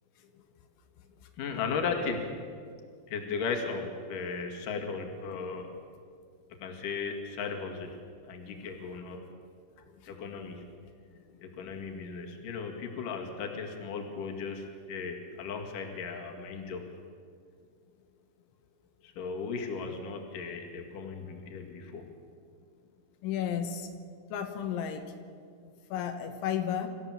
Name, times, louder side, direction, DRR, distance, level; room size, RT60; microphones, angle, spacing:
voice 1, 1.4-2.3 3.1-5.7 6.6-8.0 8.3-9.2 10.1-10.6 11.4-16.9 19.0-22.0, left 5 dB, 55° left, 2 dB, 3.2 m, -36 dB
voice 2, 9.8-10.1 10.8-10.9 23.2-23.9 24.3-25.1 25.6-26.9, left 9 dB, 85° left, 5 dB, 3.6 m, -34 dB
25.5 x 14.5 x 7.5 m, 2.2 s
omnidirectional pair, 5.3 m